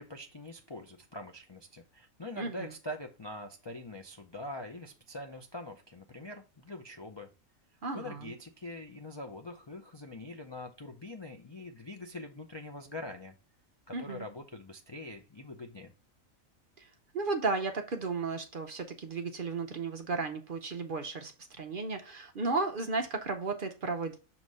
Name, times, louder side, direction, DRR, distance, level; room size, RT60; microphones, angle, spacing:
voice 1, 0.0-7.3 7.9-13.3 13.9-15.9, left 1 dB, 45° left, 0.3 m, -44 dB
voice 2, 2.4-2.7 7.8-8.3 13.9-14.3 16.8-16.9 17.1-21.3 21.6-24.2, right 3 dB, 50° right, 0.7 m, -34 dB
6.3 x 2.9 x 5.3 m
omnidirectional pair, 1.4 m